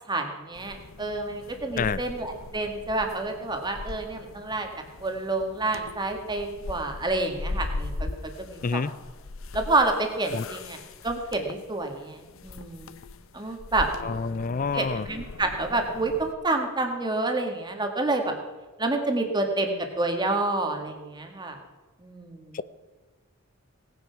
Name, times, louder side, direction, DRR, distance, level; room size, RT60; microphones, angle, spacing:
voice 1, 0.1-4.7 5.0-8.1 8.4-8.8 9.5-12.9 13.3-13.9 14.7-18.3 18.8-21.6 22.0-22.6, right 2 dB, 20° right, 4 dB, 1.8 m, -28 dB
sound 1, 0.5-16.3, left 3 dB, 75° left, 0.7 m, -39 dB
voice 2, 14.0-15.1 22.5-22.6, left 5 dB, 40° left, 17 dB, 0.4 m, -28 dB
18.5 x 9.5 x 5.8 m, 1.3 s
head